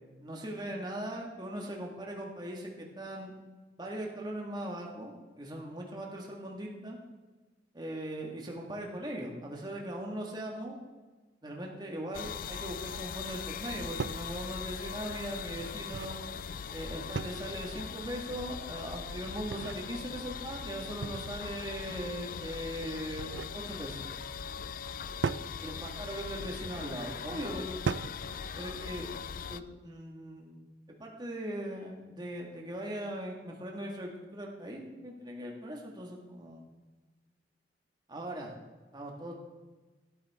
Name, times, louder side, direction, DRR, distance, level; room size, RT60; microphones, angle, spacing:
voice 1, 0.2-2.7 3.0-3.3 3.8-7.0 7.7-10.8 11.4-16.2 16.7-24.1 25.6-27.8 28.6-29.1 29.5-30.7 31.0-36.6 38.1-38.5 38.9-39.3, right 1 dB, 25° right, -1 dB, 1.9 m, -39 dB
sound 1, 12.1-29.6, left 6 dB, 50° left, 0.4 m, -40 dB
sound 2, 14.0-14.3 15.6-16.2 17.1-17.6 19.2-19.8 21.0-21.5 22.9-23.6 25.2-25.5 26.6-26.9 27.8-28.2, right 5 dB, 90° right, 0.4 m, -36 dB
12.5 x 12.5 x 3.7 m, 1.2 s
head